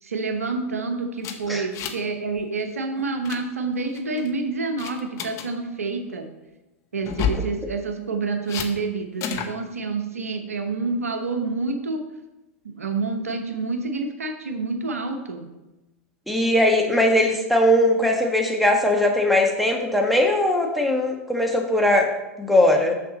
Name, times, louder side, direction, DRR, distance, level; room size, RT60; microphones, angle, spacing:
voice 1, 0.0-6.3 6.9-12.0 12.6-15.5, right 3 dB, 90° right, 6 dB, 1.0 m, -28 dB
sound 1, 1.2-2.1 2.4-2.6 3.0-3.4 3.9-4.3 4.8-5.5 7.0-7.5 8.5-8.7 9.2-9.5, left 7 dB, 40° left, 1.0 m, -29 dB
voice 2, 16.3-22.1 22.4-22.9, left 1 dB, ahead, 1 dB, 1.4 m, -20 dB
6.9 x 6.9 x 4.1 m, 1.0 s
hypercardioid pair, 100°, 8 cm